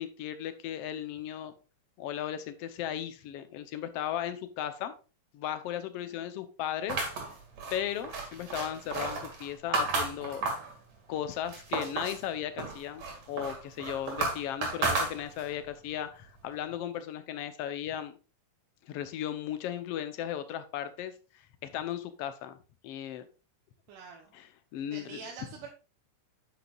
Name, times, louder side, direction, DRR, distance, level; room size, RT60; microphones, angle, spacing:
voice 1, 0.0-1.5 2.0-4.9 5.3-7.0 7.7-10.4 11.1-18.2 18.9-21.1 21.6-22.6 22.8-23.3 24.3-25.2, left 10 dB, 65° left, 11 dB, 1.6 m, -36 dB
sound 1, 6.9-10.7 11.2-12.2 12.6-15.6, right 3 dB, 60° right, 3.7 m, -33 dB
voice 2, 23.9-24.3 24.9-25.7, right 5 dB, 90° right, 1 dB, 2.7 m, -45 dB
9.2 x 8.4 x 2.5 m, 0.33 s
omnidirectional pair, 3.6 m